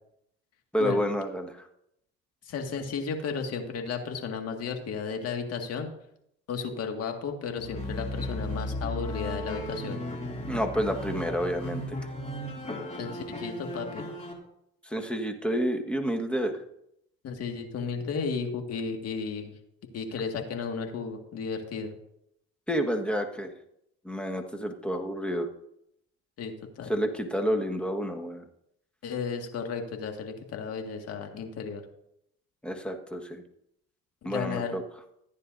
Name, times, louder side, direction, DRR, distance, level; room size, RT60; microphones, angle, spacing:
voice 1, 0.7-1.6 10.5-12.0 14.9-16.5 22.7-23.5 24.0-25.5 26.9-28.4 32.6-33.4 34.2-34.8, equal, 5° left, 4 dB, 1.4 m, -29 dB
voice 2, 2.5-5.9 6.5-10.0 13.0-14.1 17.2-19.5 19.9-21.9 26.4-26.9 29.0-31.8 34.2-34.8, left 5 dB, 55° left, 4 dB, 1.9 m, -34 dB
sound 1, 7.6-14.3, left 1 dB, 25° left, 2.6 m, -35 dB
14.5 x 9.6 x 2.6 m, 0.77 s
supercardioid pair, 85°, 29 cm